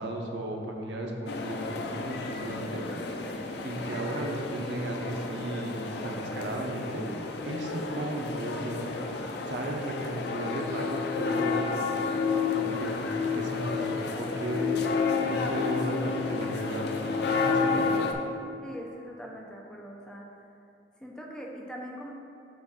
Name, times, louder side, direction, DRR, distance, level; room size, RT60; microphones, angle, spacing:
voice 1, 0.0-2.8 3.6-8.9 9.4-12.1 12.5-14.7 15.2-16.8 17.3-17.9, right 1 dB, 70° right, 1 dB, 0.8 m, -35 dB
sound 1, 1.3-18.1, left 4 dB, 65° left, 0.4 m, -31 dB
voice 2, 18.6-20.3 21.0-22.1, equal, 5° left, -2 dB, 0.6 m, -42 dB
7.1 x 2.5 x 5.5 m, 2.7 s
head